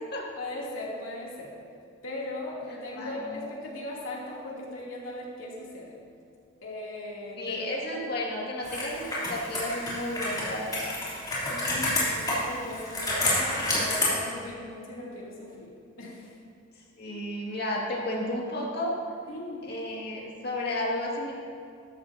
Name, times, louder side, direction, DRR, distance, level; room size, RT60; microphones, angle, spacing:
voice 1, 0.4-1.5 2.0-5.9 6.6-7.6 7.9-8.0 11.5-15.7 16.0-16.3 19.3-19.7, left 2 dB, 85° left, -5 dB, 2.7 m, -38 dB
voice 2, 3.0-3.4 7.4-11.0 17.0-18.9 19.6-21.3, left 1 dB, 50° left, -3 dB, 2.0 m, -32 dB
Computer keyboard, 8.6-14.1, left 1 dB, 20° left, 3.0 m, -29 dB
14.0 x 12.0 x 2.7 m, 2.5 s
head